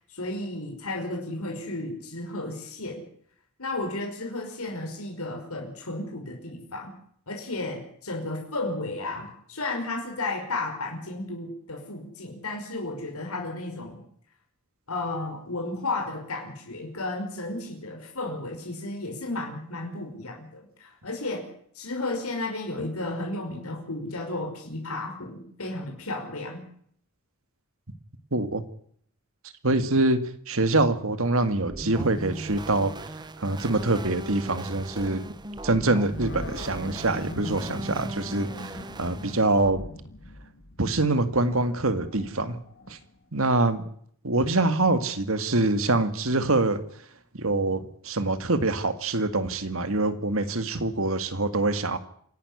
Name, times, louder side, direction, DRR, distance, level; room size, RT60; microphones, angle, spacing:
voice 1, 0.1-3.0 3.6-6.9 7.3-14.0 14.9-21.4 21.8-26.6, left 2 dB, 90° left, 1 dB, 5.6 m, -33 dB
voice 2, 28.3-28.6 29.6-30.2 30.5-32.9 33.4-35.2 35.6-39.8 40.8-42.6 42.9-43.0 43.3-43.8 44.2-46.8 47.3-52.0, right 2 dB, 70° right, 11 dB, 2.1 m, -25 dB
sound 1, 31.7-39.7, right 2 dB, 20° right, 0.9 m, -38 dB
Animal, 36.1-43.2, left 2 dB, 55° left, 2.0 m, -42 dB
27.0 x 12.0 x 9.9 m, 0.64 s
head